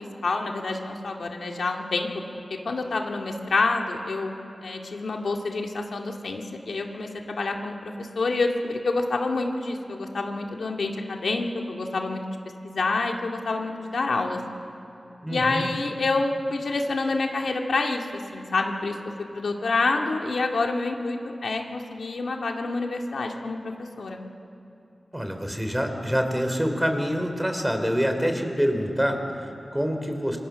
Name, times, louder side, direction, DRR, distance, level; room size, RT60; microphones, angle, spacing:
voice 1, 0.0-2.1 2.6-12.2 12.6-14.4 15.3-24.2, left 3 dB, 90° left, 2 dB, 2.0 m, -28 dB
voice 2, 15.2-15.7 25.1-30.4, equal, 5° right, 5 dB, 3.1 m, -26 dB
27.5 x 24.0 x 6.9 m, 2.8 s
wide cardioid pair, 90°, 0 cm